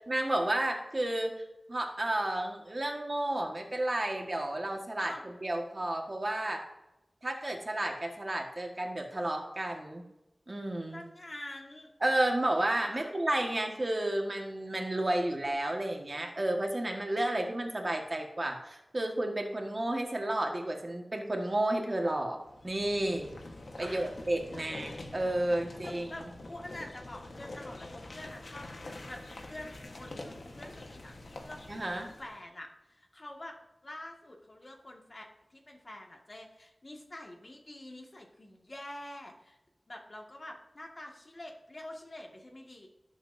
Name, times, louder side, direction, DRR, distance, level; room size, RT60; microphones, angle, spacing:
voice 1, 0.0-1.3 1.7-5.1 5.4-6.6 7.2-10.0 10.5-11.0 12.0-22.4 22.6-23.3 23.8-26.3 31.7-32.1, right 1 dB, 40° right, 2 dB, 1.7 m, -32 dB
voice 2, 10.9-11.9 12.9-13.1 23.8-24.1 24.5-24.8 25.8-28.7 29.0-29.2 29.5-31.6 32.2-33.6 33.8-39.6 39.9-42.9, left 1 dB, 45° left, 1 dB, 1.9 m, -46 dB
sound 1, 22.4-32.4, left 2 dB, 80° left, 1.3 m, -46 dB
17.5 x 7.2 x 2.7 m, 0.97 s
wide cardioid pair, 75°, 0 cm